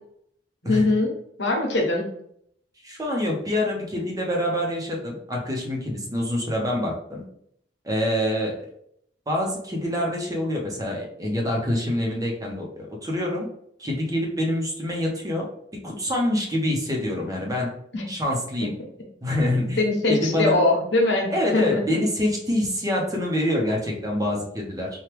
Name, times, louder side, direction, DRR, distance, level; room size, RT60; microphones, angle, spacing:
voice 1, 0.6-1.1 1.4-2.0 17.9-18.1 19.8-21.8, left 2 dB, 75° left, 0 dB, 1.1 m, -22 dB
voice 2, 2.8-7.2 7.8-8.5 9.3-13.5 13.8-15.5 15.8-17.7 18.1-18.7 19.2-19.8 20.1-20.6 21.3-24.9, left 1 dB, 20° right, -1 dB, 0.9 m, -26 dB
4.5 x 2.4 x 3.3 m, 0.69 s
head